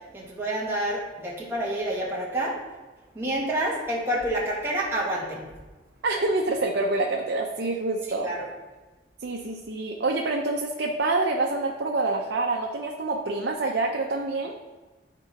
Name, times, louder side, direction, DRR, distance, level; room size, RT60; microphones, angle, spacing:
voice 1, 0.1-2.5 3.1-5.5 8.2-8.4, right 1 dB, 15° right, -6 dB, 1.5 m, -28 dB
voice 2, 6.0-8.3 9.2-14.6, right 2 dB, 75° right, 0 dB, 0.7 m, -26 dB
11.0 x 4.5 x 4.1 m, 1.2 s
head